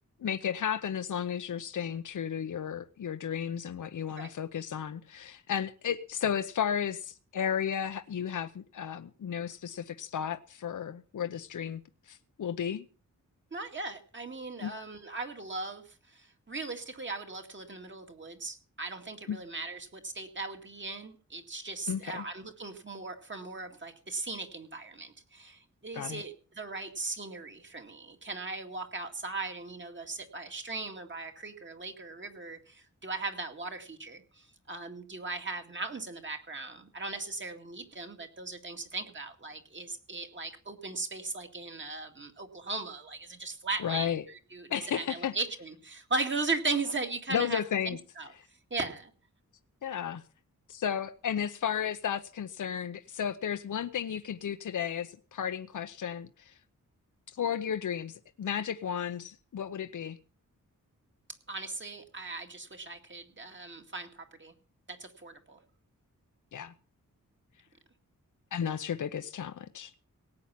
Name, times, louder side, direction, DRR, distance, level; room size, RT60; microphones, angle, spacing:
voice 1, 0.2-11.8 12.1-12.8 14.6-14.7 19.3-19.4 21.9-22.2 25.9-26.2 43.8-44.2 44.7-45.3 47.3-48.0 49.8-50.2 50.7-56.5 57.3-60.2 66.5-66.7 68.5-69.9, left 8 dB, 70° left, 0.8 m, -33 dB
voice 2, 13.5-48.3 48.7-49.1 61.5-64.5 64.9-65.6, right 3 dB, 35° right, 2.2 m, -38 dB
18.0 x 8.8 x 5.8 m
wide cardioid pair, 155°, 32 cm